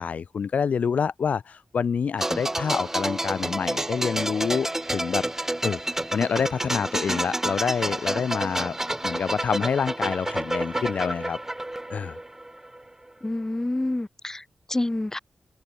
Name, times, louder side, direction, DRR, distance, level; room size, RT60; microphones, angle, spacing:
voice 1, 0.0-5.2 5.6-8.8 9.0-11.4 11.9-12.2, left 6 dB, 75° left, 1.4 m, -27 dB
sound 1, 2.2-12.8 13.1-13.3, right 1 dB, 15° right, 5.3 m, -29 dB
voice 2, 13.2-15.2, left 2 dB, 20° left, 3.2 m, -28 dB
open air
cardioid pair, 60°, 3 cm